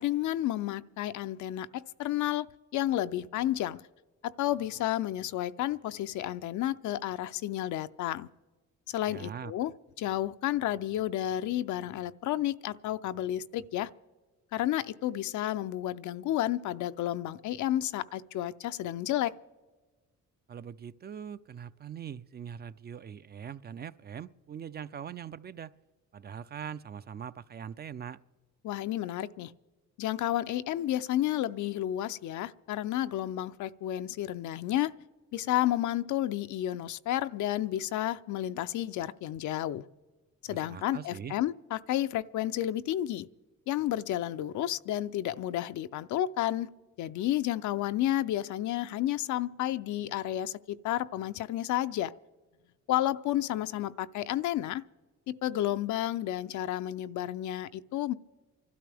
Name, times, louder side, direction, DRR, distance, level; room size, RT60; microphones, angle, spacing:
voice 1, 0.0-2.5 2.7-3.8 4.4-8.3 8.9-9.7 10.0-13.9 14.5-19.4 28.6-29.5 30.0-34.9 35.3-39.9 40.4-43.3 43.7-46.7 47.0-52.1 52.9-54.8 55.3-58.1, left 13 dB, 75° left, 0.5 m, -31 dB
voice 2, 9.1-9.5 20.5-25.7 26.1-28.2 40.5-41.4, right 8 dB, 35° right, 0.4 m, -42 dB
28.0 x 12.5 x 3.4 m
cardioid pair, 90°, 30 cm